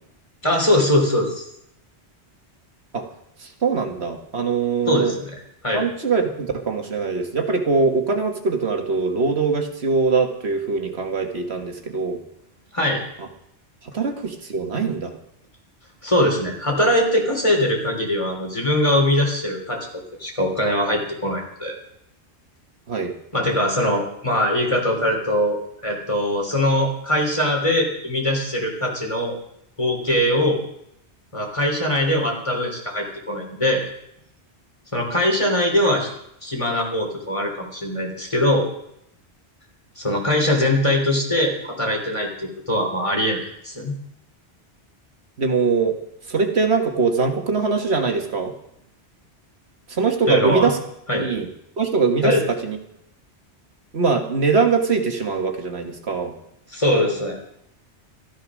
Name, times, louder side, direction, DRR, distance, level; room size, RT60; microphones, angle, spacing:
voice 1, 0.4-1.4 4.9-5.3 5.6-5.8 12.7-13.0 16.0-19.9 20.2-21.8 23.3-25.6 25.8-29.4 29.8-30.6 31.3-33.8 34.9-36.1 36.4-38.6 40.0-43.9 50.3-50.7 51.1-51.3 52.2-52.4 56.7-57.4, left 1 dB, 25° left, 1 dB, 3.3 m, -21 dB
voice 2, 3.6-5.1 5.7-12.2 13.2-13.3 13.9-15.1 22.9-23.1 45.4-45.9 46.3-48.5 49.9-50.8 51.1-51.5 51.8-52.8 53.9-56.3, right 4 dB, 65° right, 4 dB, 1.8 m, -22 dB
13.5 x 12.5 x 6.2 m, 0.75 s
omnidirectional pair, 1.2 m